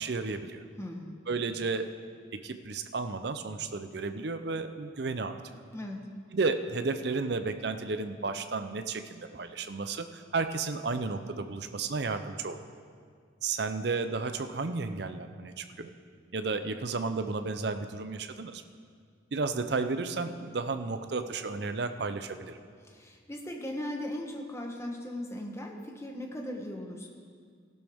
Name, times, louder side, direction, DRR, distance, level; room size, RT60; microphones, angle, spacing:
voice 1, 0.0-0.6 1.3-1.9 2.3-5.4 6.3-12.6 13.4-15.9 16.3-18.6 19.3-22.6, right 4 dB, 55° right, 9 dB, 0.6 m, -33 dB
voice 2, 0.8-1.2 5.7-6.1 22.8-27.1, left 1 dB, 15° left, 1 dB, 1.1 m, -38 dB
16.5 x 11.5 x 3.6 m, 2.1 s
head